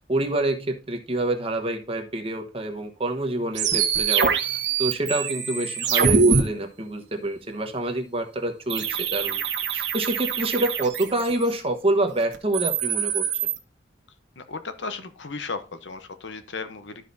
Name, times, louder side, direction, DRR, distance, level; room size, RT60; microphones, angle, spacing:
voice 1, 0.1-9.4 9.7-13.3, right 1 dB, 35° right, 5 dB, 1.1 m, -27 dB
sound 1, 3.6-6.4 8.7-11.5 12.3-13.6, right 6 dB, 70° right, 1.2 m, -24 dB
voice 2, 14.4-17.0, left 4 dB, 85° left, 10 dB, 0.9 m, -35 dB
13.0 x 5.0 x 2.7 m, 0.33 s
head